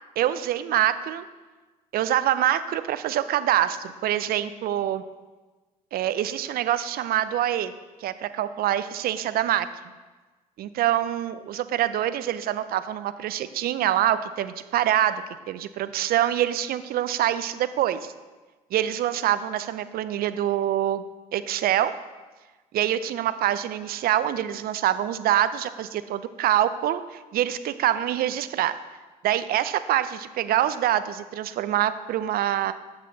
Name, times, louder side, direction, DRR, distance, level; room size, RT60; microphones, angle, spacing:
voice 1, 0.2-1.2 1.9-5.0 5.9-7.7 8.0-9.7 10.6-18.1 18.7-21.0 21.3-21.9 22.7-28.8 29.2-32.7, right 12 dB, 50° right, 13 dB, 0.5 m, -25 dB
8.6 x 6.2 x 4.0 m, 1.3 s
hypercardioid pair, 60°, 19 cm